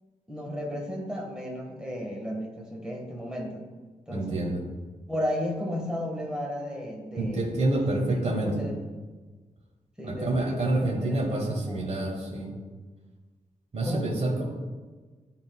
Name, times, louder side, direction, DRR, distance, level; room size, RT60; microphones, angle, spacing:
voice 1, 0.3-3.7 4.1-4.4 5.1-7.4 7.8-8.7 10.0-11.9 13.8-14.1, left 1 dB, 5° right, -1 dB, 1.0 m, -34 dB
voice 2, 4.1-4.6 7.2-8.5 10.0-12.5 13.7-14.4, right 2 dB, 50° right, -3 dB, 1.3 m, -27 dB
11.0 x 3.8 x 2.2 m, 1.4 s
wide cardioid pair, 140°, 14 cm